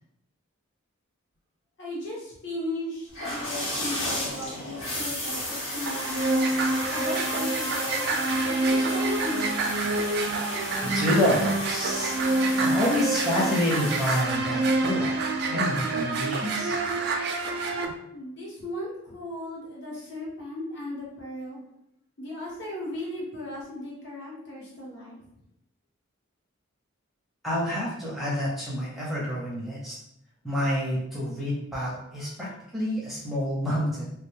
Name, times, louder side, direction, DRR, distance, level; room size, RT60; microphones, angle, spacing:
voice 1, 1.8-6.5 6.9-9.8 17.9-21.6 22.2-25.2, left 1 dB, 55° left, -5 dB, 1.0 m, -37 dB
sound 1, 3.1-14.2, left 1 dB, 80° left, 1.1 m, -34 dB
sound 2, 5.9-17.8, right 2 dB, 55° right, 0.3 m, -27 dB
voice 2, 10.8-12.3 12.6-15.2 15.5-16.8 27.4-29.9 30.4-34.1, equal, ahead, -6 dB, 0.5 m, -28 dB
2.4 x 2.2 x 3.1 m, 0.77 s
head